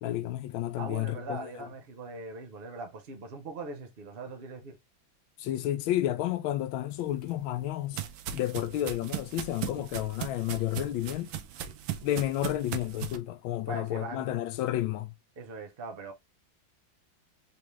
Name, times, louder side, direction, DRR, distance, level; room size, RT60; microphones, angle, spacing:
voice 1, 0.0-1.7 5.4-8.0 8.3-11.3 12.0-15.1, left 13 dB, 90° left, 1.4 m, -31 dB
voice 2, 0.8-4.8 13.7-14.3 15.4-16.1, right 3 dB, 45° right, 0.8 m, -41 dB
sound 1, 7.0-13.2, right 10 dB, 80° right, 1.4 m, -38 dB
4.0 x 3.5 x 3.1 m
omnidirectional pair, 2.1 m